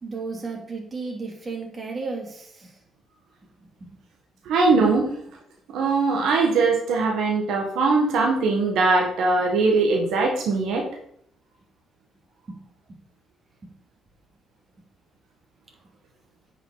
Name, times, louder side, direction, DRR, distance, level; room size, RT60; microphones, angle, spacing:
voice 1, 0.0-2.8 3.8-4.0 12.5-12.6 12.9-13.0 13.6-13.7, right 4 dB, 35° right, 0 dB, 2.8 m, -34 dB
voice 2, 4.4-5.1 5.7-10.9, right 3 dB, 80° right, 1 dB, 1.5 m, -21 dB
10.0 x 5.9 x 3.9 m, 0.69 s
cardioid pair, 90°, 0 cm